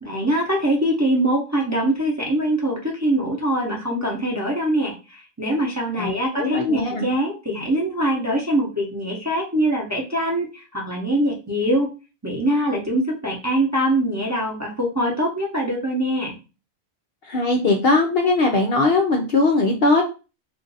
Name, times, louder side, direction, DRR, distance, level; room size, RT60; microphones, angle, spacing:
voice 1, 0.0-11.9 12.2-16.3, right 1 dB, 15° right, -2 dB, 0.6 m, -23 dB
voice 2, 6.0-7.0 17.3-20.0, left 3 dB, 60° left, 2 dB, 0.7 m, -20 dB
2.6 x 2.5 x 3.9 m, 0.30 s
omnidirectional pair, 1.4 m